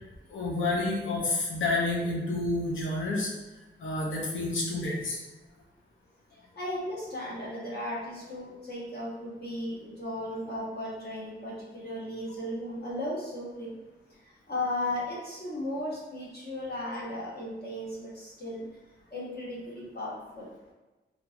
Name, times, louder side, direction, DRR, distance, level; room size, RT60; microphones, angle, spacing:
voice 1, 0.3-3.3 3.8-5.2, left 2 dB, 80° left, -2 dB, 0.7 m, -29 dB
voice 2, 6.6-13.7 14.2-18.7 19.1-20.5, left 1 dB, 50° left, -7 dB, 1.0 m, -36 dB
2.9 x 2.6 x 2.3 m, 1.2 s
wide cardioid pair, 130°, 20 cm